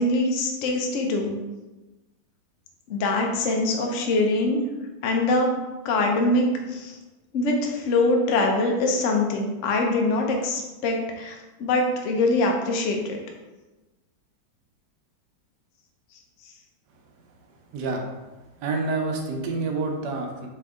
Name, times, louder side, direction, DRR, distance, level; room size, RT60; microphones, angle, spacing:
voice 1, 0.0-1.4 2.9-4.7 5.0-5.5 5.8-7.0 7.3-13.2, left 2 dB, 80° left, 1 dB, 0.7 m, -23 dB
voice 2, 17.7-18.1 18.6-20.5, right 3 dB, 70° right, 2 dB, 1.1 m, -28 dB
4.3 x 2.7 x 3.5 m, 1.1 s
omnidirectional pair, 2.1 m